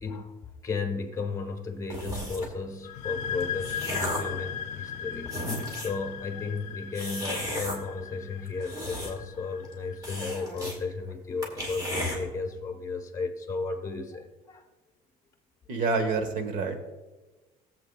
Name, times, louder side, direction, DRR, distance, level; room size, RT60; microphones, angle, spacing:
voice 1, 0.0-14.6, left 4 dB, 20° left, 4 dB, 1.1 m, -34 dB
sound 1, 1.9-2.6 3.2-4.4 4.9-5.0 5.3-6.0 6.9-7.8 8.5-9.4 9.6-9.7 10.0-10.8 11.1-11.2 11.4-12.2, equal, 25° right, 1.9 m, -34 dB
sound 2, 2.8-10.3, left 8 dB, 50° left, 0.6 m, -38 dB
voice 2, 15.7-16.8, right 4 dB, 55° right, 7 dB, 1.3 m, -27 dB
20.0 x 7.7 x 2.3 m, 1.2 s
cardioid pair, 180°, 16 cm